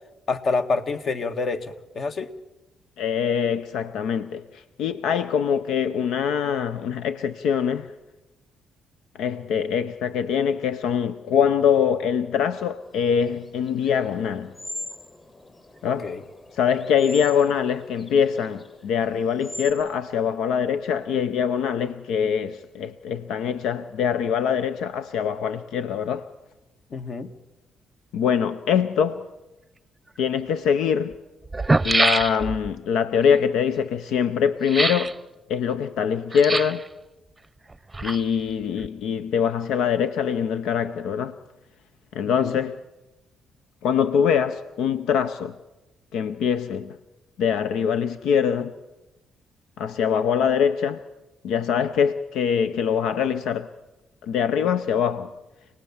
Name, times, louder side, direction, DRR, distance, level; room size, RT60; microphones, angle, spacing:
voice 1, 0.3-2.3 15.8-16.2 26.9-27.3 42.4-42.6, left 4 dB, 50° left, 1.6 m, -27 dB
voice 2, 3.0-7.9 9.1-14.5 15.8-16.1 16.5-26.3 28.1-29.2 30.2-31.2 31.8-35.1 35.5-36.8 38.0-41.4 42.1-42.8 43.8-45.6 46.1-47.0 47.4-48.7 49.8-51.0 51.4-53.7 54.2-55.3, left 7 dB, 85° left, 0.7 m, -23 dB
sound 1, 12.9-19.7, left 2 dB, 20° left, 7.6 m, -42 dB
sound 2, 30.2-30.3 31.1-31.2 31.4-32.7 34.6-35.1 36.3-36.9 37.7-38.5 38.8-38.9, right 2 dB, 15° right, 0.8 m, -24 dB
27.5 x 19.0 x 7.2 m
cardioid pair, 90°, 0 cm